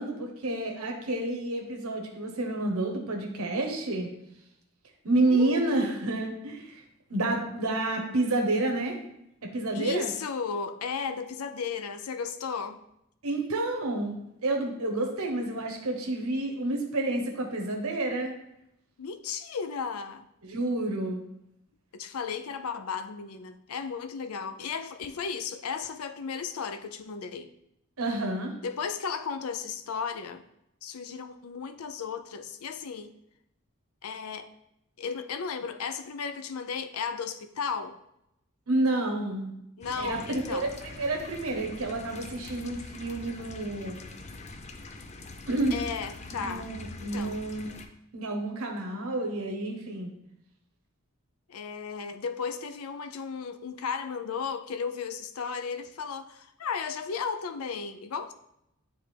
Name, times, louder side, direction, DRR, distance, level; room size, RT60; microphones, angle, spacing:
voice 1, 0.0-4.1 5.0-6.8 7.1-9.0 9.4-10.1 13.2-18.3 20.4-21.2 28.0-28.5 38.7-39.5 40.0-40.2 40.5-44.0 45.5-45.8 46.4-47.7 48.1-50.1, right 2 dB, 90° right, 2 dB, 0.9 m, -29 dB
voice 2, 5.2-5.8 9.7-12.8 19.0-20.3 21.9-27.5 28.6-30.4 30.8-33.1 34.0-34.5 35.0-38.0 39.8-40.7 45.7-46.7 47.0-47.5 51.5-58.3, left 5 dB, 90° left, 9 dB, 0.5 m, -35 dB
sound 1, 39.8-47.9, left 3 dB, 30° left, 0.4 m, -43 dB
9.3 x 3.4 x 3.3 m, 0.81 s
head